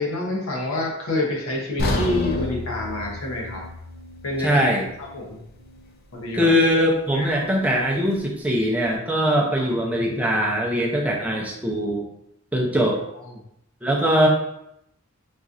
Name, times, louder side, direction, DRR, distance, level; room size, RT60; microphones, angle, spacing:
voice 1, 0.0-3.6 4.2-4.7 5.1-5.4 6.1-6.5 7.1-7.8 9.6-9.7, left 2 dB, 90° left, -1 dB, 0.8 m, -27 dB
sound 1, 1.8-5.9 6.2-6.4 7.0-7.1, left 2 dB, 45° left, 0.4 m, -30 dB
voice 2, 4.4-4.9 6.3-12.1 12.5-13.0 13.8-14.3, equal, 5° right, -2 dB, 0.5 m, -21 dB
4.0 x 2.5 x 2.4 m, 0.79 s
head